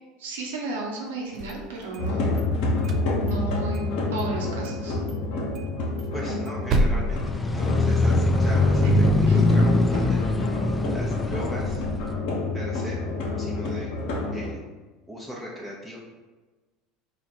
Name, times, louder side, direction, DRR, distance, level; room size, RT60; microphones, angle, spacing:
voice 1, 0.2-2.3 3.2-5.0 8.8-8.9 9.3-9.5, right 3 dB, 80° right, -2 dB, 0.9 m, -33 dB
sound 1, 1.2-2.4 2.8-3.9 4.2-4.3 4.6-4.8 5.1-5.2 5.5-8.1, right 1 dB, 50° right, 0.4 m, -29 dB
sound 2, 2.0-14.5, left 2 dB, 65° left, 0.9 m, -29 dB
voice 2, 6.1-10.3 10.9-11.8 12.5-13.0 13.4-13.9 14.3-14.6 15.1-16.0, equal, 10° right, -5 dB, 0.8 m, -37 dB
sound 3, 7.1-12.1, left 2 dB, 15° left, 0.3 m, -22 dB
4.2 x 2.4 x 4.2 m, 1.3 s
hypercardioid pair, 80°, 0 cm